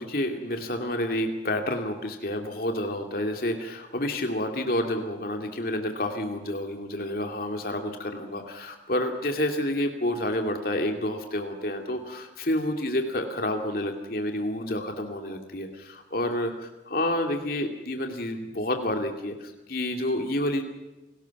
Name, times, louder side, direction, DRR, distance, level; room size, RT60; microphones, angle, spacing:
voice 1, 0.0-20.6, left 1 dB, 50° left, 4 dB, 2.5 m, -29 dB
29.5 x 19.0 x 6.0 m, 1.0 s
head